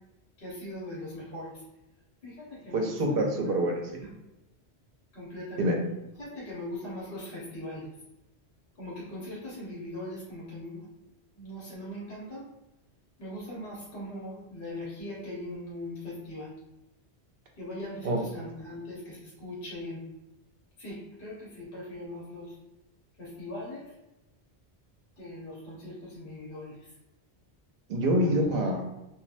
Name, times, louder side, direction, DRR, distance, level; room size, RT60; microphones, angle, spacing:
voice 1, 0.4-1.5 2.2-3.2 5.1-5.7 6.2-7.9 8.8-10.9 11.4-12.4 13.2-16.5 17.6-20.0 20.8-22.5 23.2-23.8 25.2-26.7 28.2-28.3, left 1 dB, 55° left, -6 dB, 1.1 m, -40 dB
voice 2, 2.7-3.8 5.6-5.8 18.0-18.2 27.9-28.8, right 1 dB, 65° right, 2 dB, 0.7 m, -26 dB
3.0 x 2.3 x 2.5 m, 0.93 s
omnidirectional pair, 1.1 m